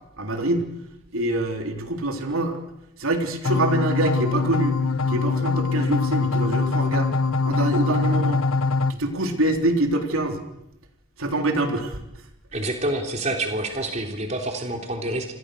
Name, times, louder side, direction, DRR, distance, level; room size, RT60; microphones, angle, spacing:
voice 1, 0.2-0.7 1.1-2.6 3.0-4.8 5.1-7.1 7.4-8.4 9.0-10.4 11.2-12.0, right 1 dB, 85° right, 4 dB, 3.6 m, -25 dB
sound 1, 3.4-8.9, left 3 dB, 90° left, 1.0 m, -23 dB
voice 2, 12.5-15.4, right 1 dB, 35° right, 3 dB, 3.4 m, -27 dB
28.0 x 26.5 x 6.6 m, 0.83 s
head